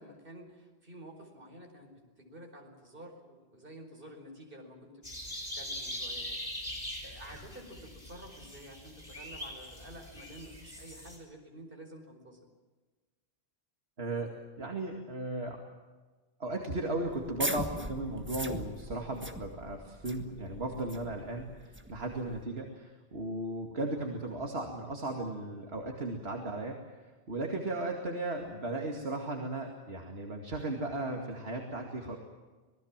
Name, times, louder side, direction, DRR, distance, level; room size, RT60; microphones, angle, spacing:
voice 1, 0.0-5.1 5.5-6.4 7.0-12.5, right 1 dB, 55° right, 3 dB, 5.0 m, -50 dB
sound 1, 5.0-11.2, left 1 dB, 40° left, 5.2 m, -42 dB
voice 2, 14.0-15.6 16.4-32.2, right 2 dB, 70° right, 2 dB, 2.6 m, -36 dB
sound 2, 17.1-22.4, right 1 dB, 10° right, 1.6 m, -40 dB
26.5 x 20.0 x 7.4 m, 1.3 s
omnidirectional pair, 1.1 m